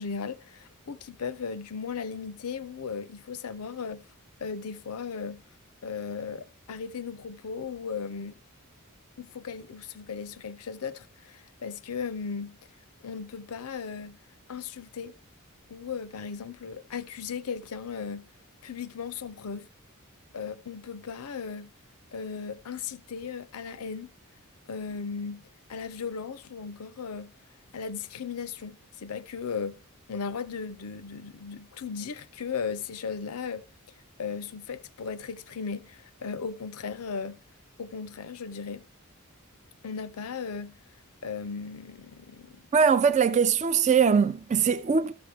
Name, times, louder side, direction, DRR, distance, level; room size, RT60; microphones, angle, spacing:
voice 1, 0.0-4.1 4.4-5.4 5.8-8.4 9.2-12.6 13.0-14.2 14.5-15.1 15.7-18.3 18.6-19.7 20.3-21.7 22.1-24.1 24.7-25.4 25.7-27.3 27.7-29.8 30.1-33.6 34.2-37.4 37.8-38.8 39.8-40.8 41.2-42.6, left 6 dB, 80° left, 0.6 m, -36 dB
voice 2, 42.7-45.1, right 6 dB, 30° right, 0.4 m, -22 dB
13.5 x 6.1 x 3.5 m
head